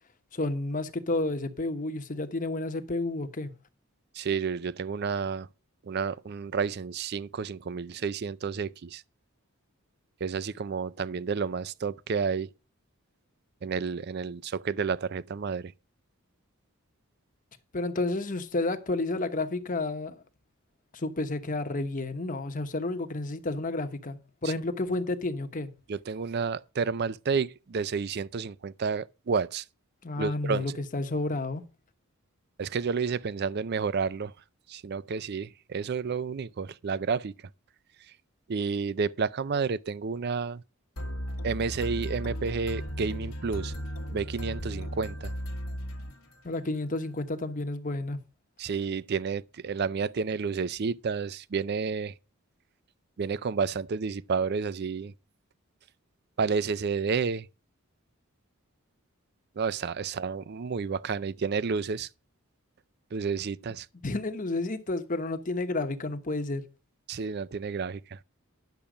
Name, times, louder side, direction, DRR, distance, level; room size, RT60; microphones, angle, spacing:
voice 1, 0.3-3.5 17.7-20.2 20.9-25.7 30.0-31.6 46.4-48.2 64.0-66.7, left 2 dB, 40° left, 1.1 m, -31 dB
voice 2, 4.1-5.5 5.8-9.0 10.2-12.5 13.6-15.7 24.4-24.5 25.9-29.6 30.2-30.8 32.6-34.3 34.7-37.3 38.5-40.6 41.4-43.7 44.1-45.3 48.6-52.1 53.2-55.1 56.4-57.5 59.6-62.1 63.1-63.9 67.1-68.2, right 5 dB, 50° right, 0.4 m, -30 dB
sound 1, 41.0-46.6, equal, 75° left, 1.3 m, -36 dB
10.5 x 7.1 x 5.0 m
head